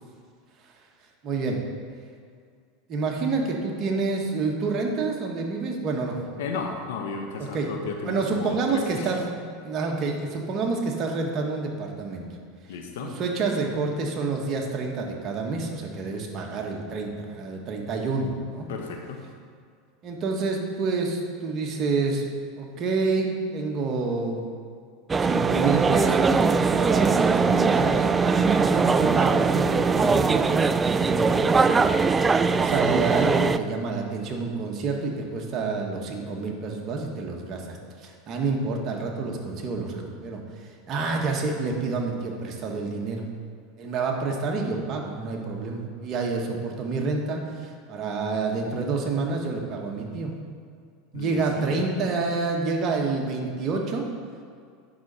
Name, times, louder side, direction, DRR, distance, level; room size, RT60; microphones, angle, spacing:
voice 1, 1.2-1.6 2.9-6.4 7.4-7.7 8.0-9.3 9.6-12.2 13.0-18.7 20.0-22.3 22.6-24.5 25.2-43.3 43.8-50.3 51.1-54.1, right 4 dB, 40° right, 1 dB, 1.6 m, -28 dB
voice 2, 6.4-9.2 12.7-13.1 18.7-19.2 51.1-51.7, left 5 dB, 75° left, 3 dB, 1.1 m, -34 dB
sound 1, 25.1-33.6, right 4 dB, 20° right, 0.3 m, -21 dB
9.5 x 6.3 x 4.2 m, 2.2 s
supercardioid pair, 110°, 0 cm